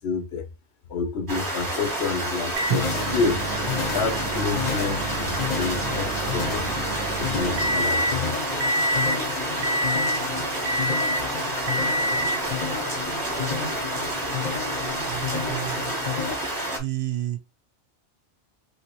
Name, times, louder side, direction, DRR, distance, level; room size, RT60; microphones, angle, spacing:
voice 1, 0.0-0.5 0.9-2.9 3.1-3.5 3.9-5.3 5.6-6.6 7.2-8.5, left 4 dB, 70° left, 0.9 m, -28 dB
sound 1, 1.3-16.8, right 1 dB, 20° right, 1.0 m, -29 dB
Microwave oven, 2.6-8.2 8.6-9.2 9.6-10.3 10.7-11.3 11.7-12.5 13.5-13.6 15.6-15.7, right 1 dB, 40° right, 0.6 m, -28 dB
sound 2, 2.7-16.3, left 7 dB, 45° left, 0.8 m, -32 dB
voice 2, 13.4-13.8 15.1-15.9 16.8-17.4, right 13 dB, 70° right, 0.8 m, -31 dB
3.0 x 2.9 x 2.8 m
omnidirectional pair, 1.2 m